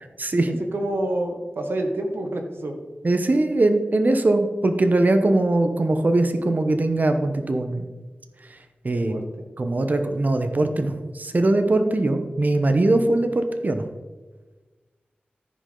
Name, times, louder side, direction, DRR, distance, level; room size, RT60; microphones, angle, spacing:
voice 1, 0.2-0.5 3.0-7.9 8.5-8.6 8.8-9.2 9.6-13.8, right 2 dB, 50° right, 7 dB, 0.8 m, -21 dB
voice 2, 0.7-2.8 8.9-9.5, right 1 dB, 90° right, 4 dB, 1.3 m, -28 dB
14.0 x 5.3 x 3.8 m, 1.3 s
wide cardioid pair, 55°, 4 cm